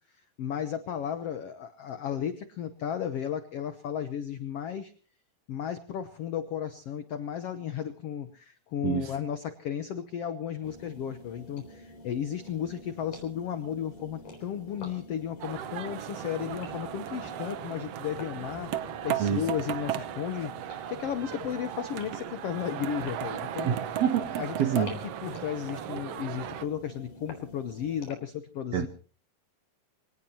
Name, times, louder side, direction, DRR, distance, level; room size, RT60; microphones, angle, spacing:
voice 1, 0.4-4.9 5.5-23.8 24.4-24.9 25.2-28.9, left 9 dB, 80° left, 10 dB, 1.4 m, -34 dB
sound 1, 10.6-28.1, left 1 dB, 60° left, 5.2 m, -48 dB
sound 2, 15.4-26.7, right 11 dB, 80° right, 1.4 m, -36 dB
voice 2, 23.6-24.9 28.7-28.9, right 9 dB, 65° right, 8 dB, 1.8 m, -27 dB
25.5 x 18.0 x 2.9 m, 0.38 s
omnidirectional pair, 4.1 m